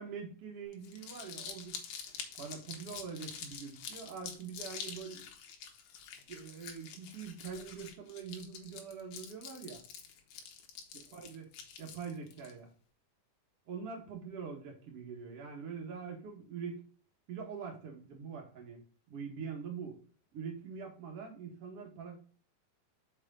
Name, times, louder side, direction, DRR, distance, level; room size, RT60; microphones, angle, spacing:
voice 1, 0.0-1.8 2.4-5.3 6.3-9.8 11.1-11.4 11.8-12.7 13.7-16.8 17.3-18.8 19.1-20.0 20.3-22.2, right 6 dB, 70° right, 1 dB, 1.4 m, -44 dB
Crumpling crinkling, 0.7-12.5, left 7 dB, 80° left, 1.7 m, -47 dB
6.4 x 5.2 x 3.7 m, 0.41 s
omnidirectional pair, 5.3 m